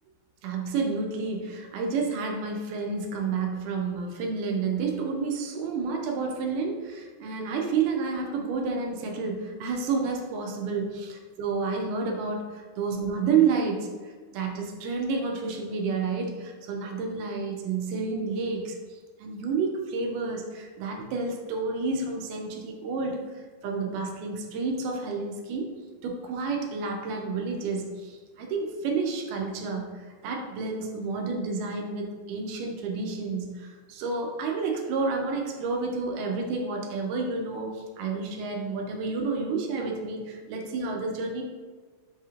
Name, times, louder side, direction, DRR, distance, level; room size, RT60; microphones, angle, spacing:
voice 1, 0.4-13.9 14.3-25.7 26.0-29.9 30.2-41.4, right 4 dB, 80° right, 1 dB, 2.0 m, -30 dB
5.5 x 2.9 x 2.4 m, 1.4 s
omnidirectional pair, 4.0 m